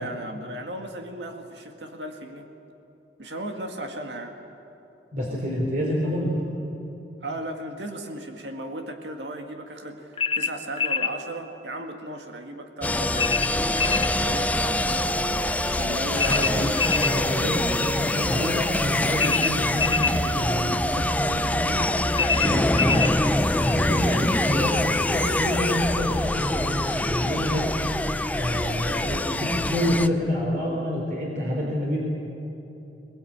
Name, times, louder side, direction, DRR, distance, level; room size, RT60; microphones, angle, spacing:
voice 1, 0.0-2.5 3.2-4.4 7.2-14.9 15.6-16.8 31.4-31.8, right 1 dB, 85° right, 4 dB, 2.0 m, -36 dB
voice 2, 5.1-6.4 16.3-23.1 23.7-27.9 28.4-32.0, equal, 50° right, -3 dB, 3.8 m, -28 dB
sound 1, 10.2-11.2 13.2-14.1 16.2-17.2 19.2-20.2 22.1-23.2, left 6 dB, 30° left, 0.9 m, -25 dB
sound 2, 12.8-30.1, left 1 dB, 10° left, 0.5 m, -25 dB
21.5 x 21.0 x 8.8 m, 3.0 s
head